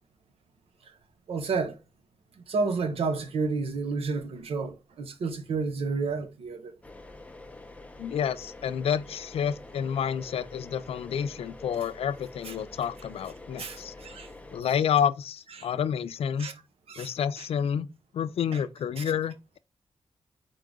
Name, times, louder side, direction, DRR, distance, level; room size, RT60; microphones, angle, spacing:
voice 1, 1.3-1.8 2.5-6.7 12.4-12.5 13.6-14.3 15.6-15.7 16.4-16.5 16.9-17.1 17.4-17.5 18.5-18.6 19.0-19.1, right 4 dB, 90° right, 0.9 m, -31 dB
sound 1, 6.8-14.6, left 2 dB, 15° left, 0.6 m, -46 dB
voice 2, 8.0-13.9 14.5-16.5 17.0-17.9 18.1-19.6, left 8 dB, 85° left, 0.4 m, -29 dB
3.8 x 3.7 x 3.5 m
wide cardioid pair, 120°, 10 cm